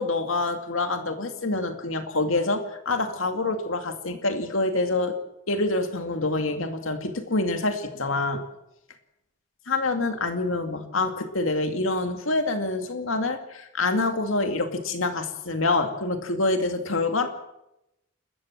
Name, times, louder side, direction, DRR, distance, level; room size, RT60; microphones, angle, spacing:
voice 1, 0.0-5.2 5.5-8.4 9.7-17.3, left 2 dB, 70° left, 6 dB, 2.4 m, -26 dB
29.5 x 13.5 x 7.5 m, 0.89 s
head